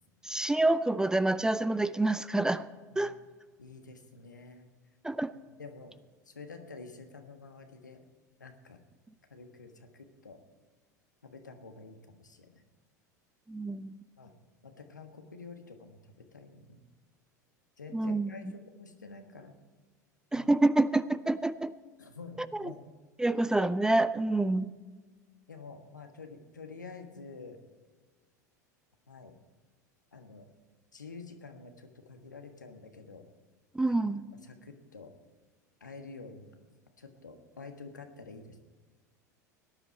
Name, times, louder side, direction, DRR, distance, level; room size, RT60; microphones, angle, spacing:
voice 1, 0.2-2.7 3.0-3.1 5.0-5.3 13.5-14.0 17.9-18.3 20.3-21.7 22.4-22.7 23.2-24.7 33.7-34.2, right 2 dB, 5° right, 16 dB, 0.4 m, -27 dB
voice 2, 3.6-4.7 5.6-5.9 6.3-8.0 8.4-8.8 9.3-10.4 11.2-12.5 14.2-14.3 14.6-16.9 17.8-19.5 20.3-20.5 22.0-22.8 25.5-27.6 29.1-29.4 30.1-30.5 30.9-33.2 33.9-34.0 34.4-35.1 35.8-36.5 37.0-38.6, left 4 dB, 80° left, 6 dB, 1.4 m, -48 dB
18.0 x 11.0 x 4.5 m, 1.4 s
figure-of-eight pair, 80°, 10 cm